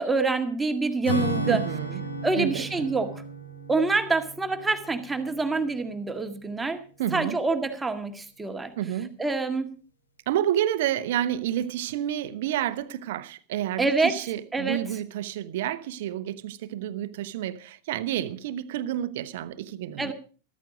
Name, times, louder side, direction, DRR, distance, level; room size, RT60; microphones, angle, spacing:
voice 1, 0.0-1.6 2.2-3.2 3.7-6.8 7.1-8.7 9.2-9.7 13.8-14.2 14.5-14.8 20.0-20.1, right 3 dB, 10° right, 1.7 m, -26 dB
Acoustic guitar / Strum, 1.0-5.8, right 1 dB, 75° left, 2.3 m, -33 dB
voice 2, 1.5-2.0 2.4-2.9 7.0-7.4 8.8-9.2 10.3-20.1, right 11 dB, 55° right, 0.9 m, -30 dB
14.0 x 13.5 x 5.1 m
figure-of-eight pair, 90°, 0 cm